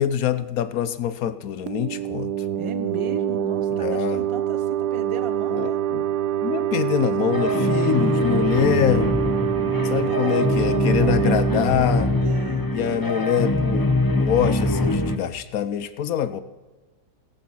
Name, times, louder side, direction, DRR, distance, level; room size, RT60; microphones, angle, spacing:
voice 1, 0.0-2.3 3.7-4.2 5.5-6.0 6.4-9.1 9.8-12.1 12.7-16.4, left 10 dB, 65° left, 13 dB, 1.0 m, -25 dB
sound 1, 1.7-13.1, right 11 dB, 80° right, 1.2 m, -26 dB
voice 2, 2.5-5.8 9.7-10.5 10.9-11.5 12.2-13.3, right 4 dB, 30° right, 10 dB, 0.6 m, -35 dB
sound 2, 7.3-15.2, left 2 dB, 30° left, 0.4 m, -23 dB
18.5 x 8.6 x 5.6 m, 1.3 s
omnidirectional pair, 1.7 m